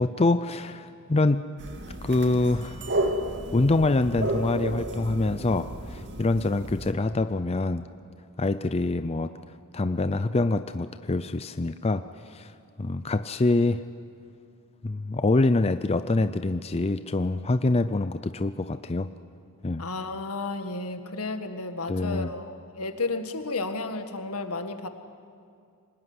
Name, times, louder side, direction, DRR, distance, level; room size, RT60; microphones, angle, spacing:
voice 1, 0.0-1.4 2.0-2.8 3.5-7.8 8.4-9.3 9.7-12.0 12.3-12.5 12.8-13.8 14.8-19.1 19.6-19.8 21.9-22.3, left 2 dB, 25° left, 11 dB, 0.5 m, -25 dB
sound 1, 1.6-6.9, right 1 dB, 50° right, 2.3 m, -32 dB
voice 2, 19.8-24.9, left 3 dB, 75° left, 7 dB, 1.8 m, -32 dB
25.0 x 20.0 x 9.6 m, 2.4 s
head